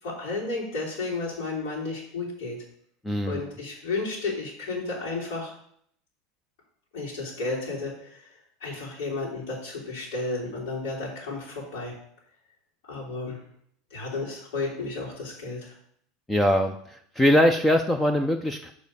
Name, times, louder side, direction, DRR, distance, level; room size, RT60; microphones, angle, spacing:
voice 1, 0.0-2.6 3.3-5.6 6.9-8.3 8.6-11.9 12.8-13.4 13.9-15.7, left 3 dB, 80° left, -8 dB, 3.7 m, -32 dB
voice 2, 3.0-3.4 16.3-18.7, equal, 5° left, 6 dB, 0.4 m, -22 dB
6.7 x 4.9 x 5.4 m, 0.65 s
supercardioid pair, 165°, 0 cm